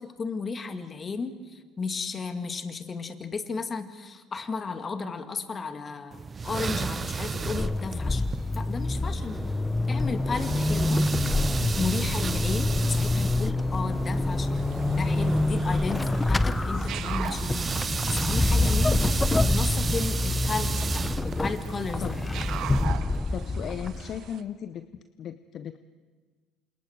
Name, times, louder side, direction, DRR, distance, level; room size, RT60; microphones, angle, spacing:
voice 1, 0.0-8.3 8.5-9.4 9.9-11.0 11.8-14.6 15.0-17.8 18.1-19.1 19.5-22.0, left 4 dB, 30° left, 8 dB, 2.2 m, -34 dB
sound 1, 6.1-22.9, right 5 dB, 30° right, 0.7 m, -34 dB
Vehicle / Accelerating revving vroom / Squeak, 7.1-24.3, left 2 dB, 15° left, 0.8 m, -27 dB
sound 2, 14.5-24.4, right 11 dB, 55° right, 1.2 m, -42 dB
voice 2, 23.3-24.9 25.2-25.8, left 9 dB, 50° left, 12 dB, 0.8 m, -36 dB
28.5 x 27.0 x 4.7 m, 1.5 s
figure-of-eight pair, 60°, 0 cm